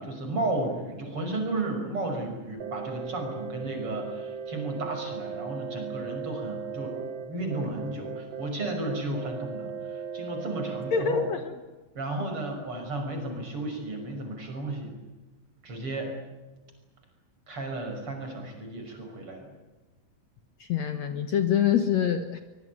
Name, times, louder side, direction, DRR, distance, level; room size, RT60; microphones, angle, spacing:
voice 1, 0.0-11.2 11.9-14.9 15.6-16.1 17.5-19.5, right 2 dB, 40° right, 4 dB, 6.6 m, -33 dB
sound 1, 2.6-11.3, right 6 dB, 85° right, 3.2 m, -37 dB
voice 2, 10.9-11.4 20.6-22.4, left 8 dB, 60° left, 8 dB, 2.3 m, -25 dB
24.0 x 23.0 x 9.5 m, 1.2 s
omnidirectional pair, 4.0 m